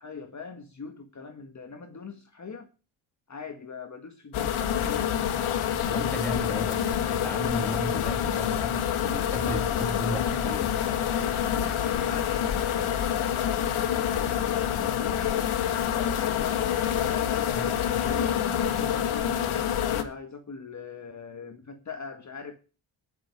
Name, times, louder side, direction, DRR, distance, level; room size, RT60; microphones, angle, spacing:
voice 1, 0.0-2.7 3.3-5.2 6.7-6.9 9.4-10.0 11.4-15.7 16.1-18.4 18.7-22.6, left 5 dB, 35° left, 1.7 m, -41 dB
sound 1, 4.3-20.0, left 9 dB, 80° left, 2.4 m, -27 dB
voice 2, 5.8-10.7 17.5-18.1, equal, 5° left, 3.2 m, -35 dB
21.0 x 7.4 x 4.7 m
cardioid pair, 80°, 48 cm